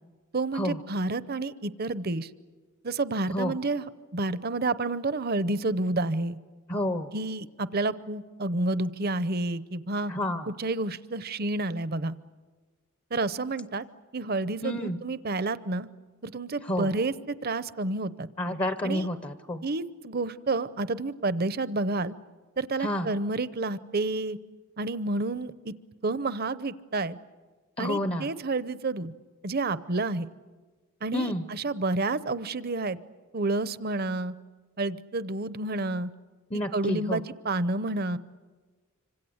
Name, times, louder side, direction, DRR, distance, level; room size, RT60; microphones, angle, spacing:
voice 1, 0.3-2.3 2.8-6.4 7.1-10.1 10.5-12.1 13.1-13.9 14.1-15.9 16.2-18.3 18.8-19.1 19.6-22.1 22.6-24.4 24.8-25.7 26.0-27.2 27.8-29.1 29.4-30.3 31.0-33.0 33.3-34.3 34.8-36.1 36.7-38.2, right 2 dB, 45° right, 15 dB, 0.7 m, -29 dB
voice 2, 6.7-7.1 10.1-10.5 14.6-15.0 16.6-16.9 18.4-19.6 22.8-23.1 27.8-28.3 31.1-31.4 36.5-37.2, left 1 dB, 25° left, 10 dB, 0.7 m, -29 dB
26.0 x 26.0 x 7.9 m, 1.3 s
head